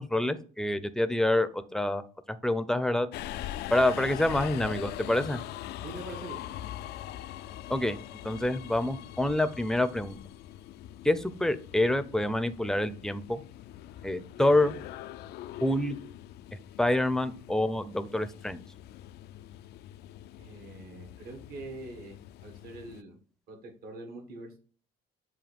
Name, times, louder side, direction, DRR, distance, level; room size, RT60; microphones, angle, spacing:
voice 1, 0.0-2.0 2.3-3.1 3.7-5.4 7.7-8.0 8.2-10.2 11.0-13.4 14.0-14.8 15.6-16.0 16.8-18.6, left 1 dB, 5° left, 12 dB, 0.6 m, -27 dB
Subway metro underground, 3.1-23.0, left 13 dB, 75° left, 0.4 m, -42 dB
voice 2, 5.8-6.5 20.4-23.2 23.5-24.6, right 2 dB, 65° right, 3 dB, 1.8 m, -44 dB
7.6 x 2.7 x 5.2 m, 0.42 s
cardioid pair, 110°, 17 cm